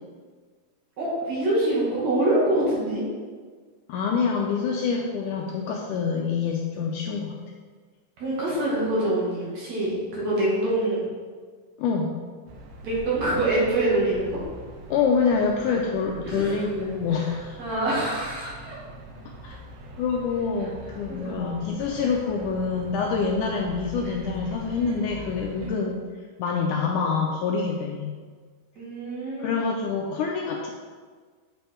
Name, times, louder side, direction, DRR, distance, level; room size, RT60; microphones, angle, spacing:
voice 1, 1.0-3.0 8.2-11.0 12.8-14.4 16.2-16.6 17.1-17.2 17.6-18.8 21.1-21.4 25.6-25.8 28.8-29.5, right 1 dB, 55° right, -6 dB, 3.0 m, -25 dB
voice 2, 3.9-7.4 11.8-12.1 14.9-17.6 19.4-19.6 20.0-26.0 26.4-28.2 29.4-30.7, left 5 dB, 80° left, 0 dB, 1.9 m, -26 dB
sound 1, 12.5-25.7, right 1 dB, 80° right, 2.5 m, -42 dB
7.8 x 5.3 x 4.4 m, 1.5 s
omnidirectional pair, 4.1 m